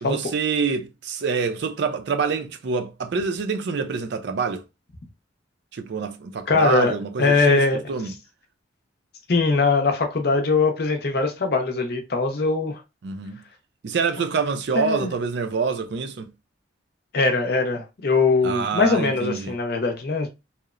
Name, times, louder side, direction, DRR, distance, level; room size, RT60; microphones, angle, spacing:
voice 1, 0.0-4.6 5.7-8.1 13.0-13.4 13.8-16.3 18.4-19.5, right 5 dB, 60° right, 0.4 m, -26 dB
voice 2, 6.5-7.8 9.3-12.8 14.7-15.1 17.1-20.3, left 3 dB, 55° left, 0.5 m, -21 dB
2.8 x 2.0 x 2.4 m
head